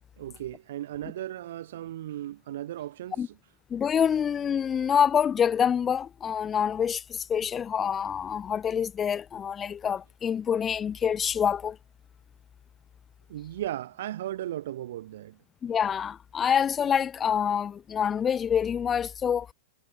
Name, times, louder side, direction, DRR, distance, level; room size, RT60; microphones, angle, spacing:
voice 1, 0.2-3.2 13.3-15.4, right 13 dB, 55° right, 2.7 m, -36 dB
voice 2, 3.7-11.8 15.6-19.5, left 8 dB, 20° left, 0.5 m, -26 dB
figure-of-eight pair, 95°, 0 cm